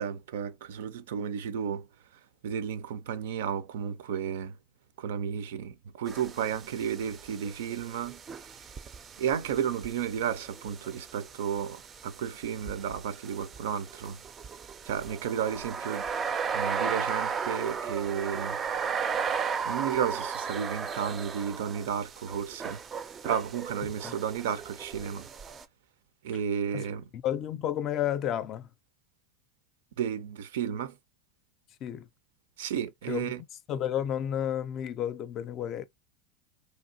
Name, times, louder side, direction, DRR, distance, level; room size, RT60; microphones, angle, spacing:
voice 1, 0.0-1.9 2.4-4.6 5.0-8.2 9.2-14.2 14.8-16.1 16.5-18.6 19.6-22.8 23.2-25.3 26.2-27.1 30.0-31.0 32.6-33.4, right 8 dB, 85° right, 0.5 m, -32 dB
sound 1, 6.1-25.6, right 6 dB, 25° right, 0.4 m, -36 dB
voice 2, 27.1-28.7 31.8-32.1 33.1-33.3 33.7-35.8, left 10 dB, 40° left, 0.4 m, -31 dB
2.9 x 2.8 x 2.6 m
supercardioid pair, 130°, 0 cm